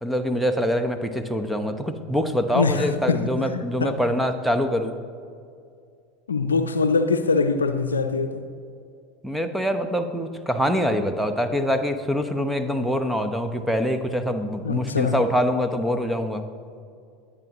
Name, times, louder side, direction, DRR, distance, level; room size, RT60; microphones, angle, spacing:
voice 1, 0.0-5.0 9.2-16.5, equal, 5° right, 1.0 m, -24 dB
voice 2, 2.5-4.0 6.3-8.5 14.6-15.2, left 4 dB, 85° left, 0.6 m, -23 dB
21.5 x 8.6 x 3.1 m
figure-of-eight pair, 75°, 0 cm